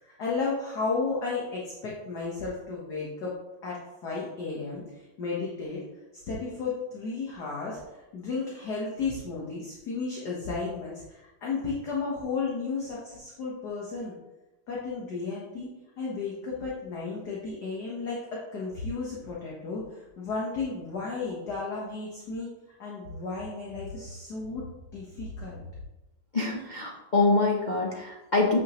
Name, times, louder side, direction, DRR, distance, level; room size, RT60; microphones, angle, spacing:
voice 1, 0.0-3.4 3.6-5.8 6.1-14.1 14.7-15.7 16.0-22.5 22.8-24.6 24.9-25.6, left 4 dB, 50° left, -4 dB, 1.6 m, -33 dB
voice 2, 26.3-28.6, left 3 dB, 80° left, -2 dB, 0.4 m, -25 dB
8.5 x 6.3 x 3.0 m, 1.0 s
omnidirectional pair, 2.4 m